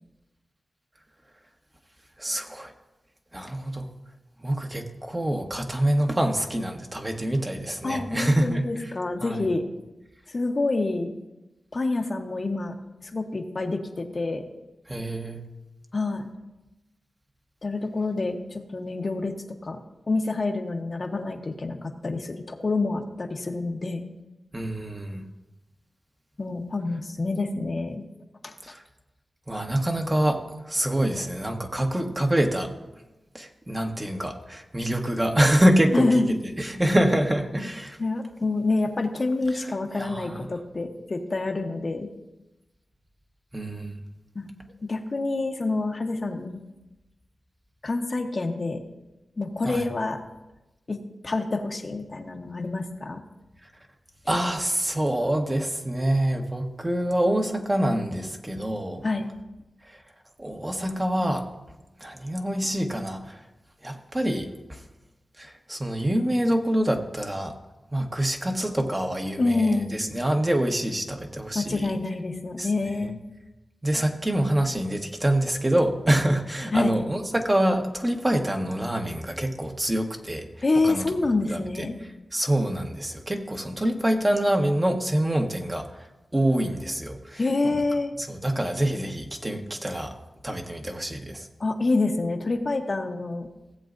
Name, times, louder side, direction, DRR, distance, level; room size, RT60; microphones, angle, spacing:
voice 1, 2.2-2.7 3.3-3.9 4.4-8.7 9.2-9.4 14.9-15.4 24.5-25.3 28.6-28.8 29.5-32.7 33.3-38.0 39.9-40.5 43.5-44.0 49.6-49.9 54.3-59.0 59.8-60.0 60.4-61.5 62.0-63.4 63.8-64.8 65.4-67.5 67.9-71.9 72.6-73.1 73.8-80.5 80.8-81.0 81.5-81.9 82.3-85.9 86.3-87.7 88.2-90.2 90.4-91.5, right 1 dB, 20° right, 3 dB, 1.2 m, -26 dB
voice 2, 7.8-9.6 10.3-11.1 11.7-12.7 13.0-14.4 15.9-16.3 17.6-19.3 19.6-19.8 20.1-24.0 26.4-28.0 28.4-28.5 35.9-36.3 38.0-42.1 44.3-44.5 44.9-46.6 47.8-48.8 49.4-50.2 50.9-51.0 51.2-53.2 59.0-59.3 69.4-70.0 71.5-73.2 76.7-76.9 80.6-82.0 87.4-88.1 91.6-93.5, left 3 dB, 45° left, 3 dB, 1.0 m, -27 dB
17.0 x 7.7 x 2.6 m, 1.0 s
cardioid pair, 60°, 0 cm